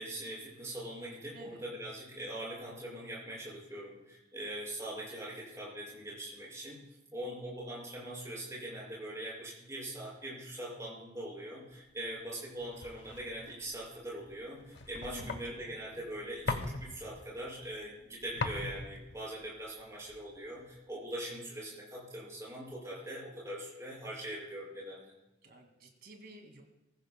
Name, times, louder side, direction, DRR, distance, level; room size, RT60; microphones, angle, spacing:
voice 1, 0.0-6.8 7.1-25.1, right 1 dB, 15° right, -5 dB, 5.9 m, -42 dB
voice 2, 1.3-1.7 15.0-16.0 25.4-26.6, right 1 dB, 55° right, 3 dB, 2.2 m, -52 dB
sound 1, 11.9-20.9, left 3 dB, 80° left, 1.0 m, -42 dB
21.0 x 14.5 x 2.2 m, 0.98 s
head